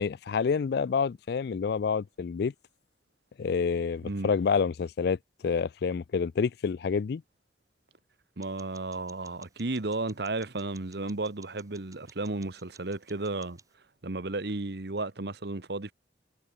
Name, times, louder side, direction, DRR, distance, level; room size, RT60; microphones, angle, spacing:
voice 1, 0.0-2.5 3.4-5.2 5.4-7.2, left 5 dB, 60° left, 0.4 m, -28 dB
sound 1, 8.4-13.7, right 5 dB, 20° right, 3.1 m, -58 dB
voice 2, 8.4-13.6 14.0-15.9, right 2 dB, 60° right, 1.2 m, -33 dB
head